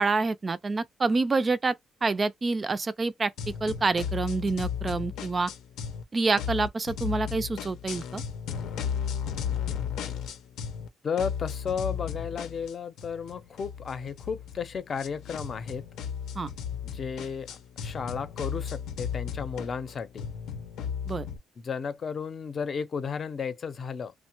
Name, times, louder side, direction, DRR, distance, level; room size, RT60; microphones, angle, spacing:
voice 1, 0.0-3.3 3.6-5.5 6.1-8.2 16.4-16.5 21.1-21.3, right 3 dB, 30° right, 0.3 m, -27 dB
sound 1, 3.4-6.0 6.3-10.9 11.2-21.4, left 8 dB, 85° left, 0.6 m, -35 dB
voice 2, 11.0-15.8 16.8-20.3 21.6-24.1, left 6 dB, 45° left, 0.6 m, -33 dB
2.9 x 2.1 x 2.9 m
cardioid pair, 90°, 0 cm